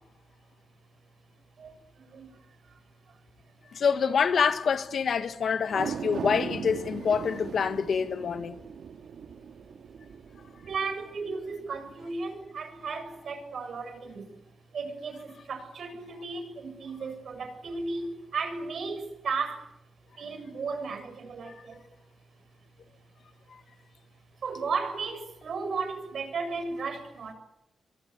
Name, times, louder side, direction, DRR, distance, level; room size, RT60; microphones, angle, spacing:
voice 1, 1.6-2.8 3.1-3.2 3.6-3.7 10.7-14.4 14.7-19.7 20.2-21.8 24.4-27.3, right 4 dB, 60° right, 7.4 m, -35 dB
voice 2, 3.7-8.6, left 6 dB, 60° left, 1.5 m, -26 dB
sound 1, 5.6-12.1 12.5-12.6, right 7 dB, 80° right, 1.8 m, -39 dB
28.0 x 25.0 x 8.3 m
wide cardioid pair, 175°, 0 cm